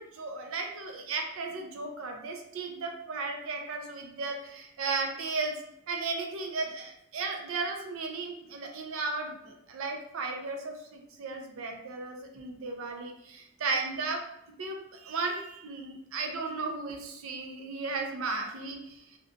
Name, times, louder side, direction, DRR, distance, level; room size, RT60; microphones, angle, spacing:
voice 1, 0.0-5.6 5.9-14.2 14.6-19.0, right 3 dB, 70° right, 3 dB, 0.4 m, -35 dB
2.5 x 2.2 x 2.5 m, 0.80 s
head